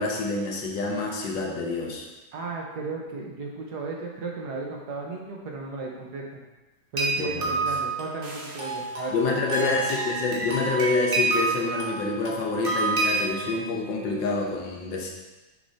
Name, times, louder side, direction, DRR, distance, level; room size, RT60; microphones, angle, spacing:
voice 1, 0.0-2.0 7.2-7.5 9.1-15.1, left 3 dB, 75° left, 0 dB, 1.6 m, -27 dB
voice 2, 2.3-6.4 6.9-9.8, right 3 dB, 60° right, -1 dB, 1.5 m, -35 dB
sound 1, 7.0-13.4, right 3 dB, 35° right, 1.2 m, -28 dB
sound 2, 8.2-9.5, right 2 dB, 75° right, 1.9 m, -45 dB
6.6 x 6.4 x 2.8 m, 1.1 s
omnidirectional pair, 2.1 m